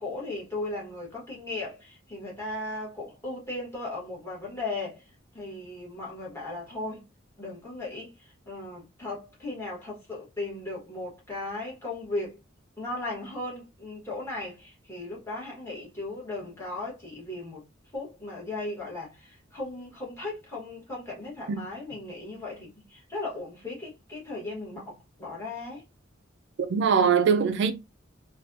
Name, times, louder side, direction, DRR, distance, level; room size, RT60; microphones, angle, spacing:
voice 1, 0.0-5.0 5.3-7.0 7.4-12.4 12.8-17.6 17.9-25.8, left 2 dB, 15° left, 1.4 m, -37 dB
voice 2, 26.6-27.7, right 6 dB, 60° right, 0.3 m, -22 dB
3.3 x 2.3 x 2.6 m
head